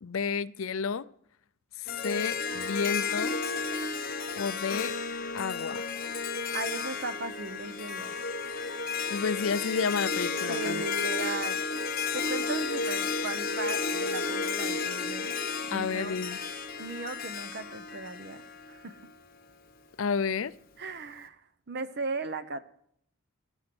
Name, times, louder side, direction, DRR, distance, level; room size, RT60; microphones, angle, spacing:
voice 1, 0.0-1.1 1.8-3.4 4.4-4.9 5.3-5.9 9.1-10.8 15.7-16.4 20.0-20.5, left 5 dB, 65° left, 17 dB, 0.5 m, -31 dB
Harp, 1.9-19.1, left 4 dB, 40° left, 1.0 m, -32 dB
voice 2, 6.5-8.1 10.5-15.4 15.7-16.2 16.8-19.0 20.8-22.6, right 3 dB, 50° right, 12 dB, 0.9 m, -38 dB
15.5 x 12.5 x 6.1 m, 0.70 s
head